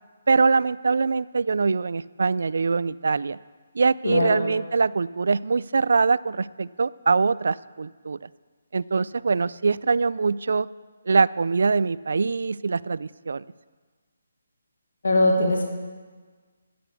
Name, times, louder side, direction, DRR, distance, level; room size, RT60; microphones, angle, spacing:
voice 1, 0.3-3.4 3.7-8.3 8.7-10.7 11.1-13.4, right 4 dB, 65° right, 19 dB, 0.3 m, -23 dB
voice 2, 4.0-4.6 15.0-15.6, left 2 dB, 65° left, 2 dB, 1.8 m, -21 dB
10.0 x 7.7 x 8.2 m, 1.5 s
hypercardioid pair, 170°, 0 cm